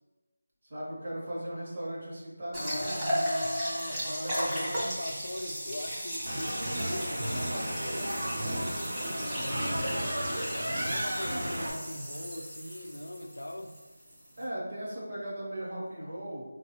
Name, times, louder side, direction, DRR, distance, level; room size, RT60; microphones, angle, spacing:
voice 1, 0.7-3.3 4.0-4.9 9.1-9.5 14.4-16.4, right 1 dB, 35° right, -5 dB, 0.8 m, -38 dB
voice 2, 2.5-8.4 9.3-10.1 10.7-13.8, left 1 dB, 85° left, 5 dB, 0.4 m, -40 dB
sound 1, 2.5-14.4, equal, 5° right, 0.4 m, -36 dB
sound 2, 6.2-11.7, right 1 dB, 70° right, 0.7 m, -33 dB
4.2 x 2.3 x 2.9 m, 1.2 s
figure-of-eight pair, 180°, 0 cm